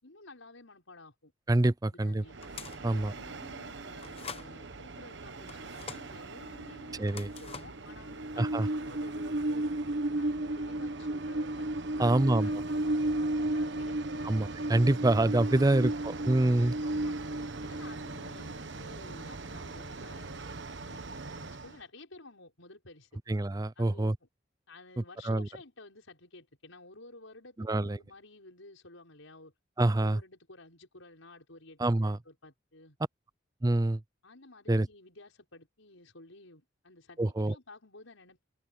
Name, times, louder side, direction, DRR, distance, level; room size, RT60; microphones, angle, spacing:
voice 1, 0.0-1.3 1.9-2.4 2.8-9.7 10.1-14.3 15.5-16.0 16.5-17.1 17.5-20.4 20.8-23.1 23.8-24.3 24.7-29.5 30.0-33.0 34.2-38.4, left 2 dB, 80° left, 5.6 m, -53 dB
voice 2, 1.5-2.2 2.8-3.1 7.0-7.3 8.4-8.7 12.0-12.5 14.2-16.7 23.3-24.2 25.2-25.5 27.6-28.0 29.8-30.2 31.8-32.2 33.6-34.0 34.7-34.9 37.2-37.5, right 2 dB, 20° right, 0.4 m, -26 dB
Train, 2.3-21.8, right 2 dB, 60° right, 1.1 m, -35 dB
sound 1, 2.4-2.9 4.0-4.5 5.5-6.1 7.0-7.8, left 6 dB, 30° left, 1.0 m, -44 dB
open air
head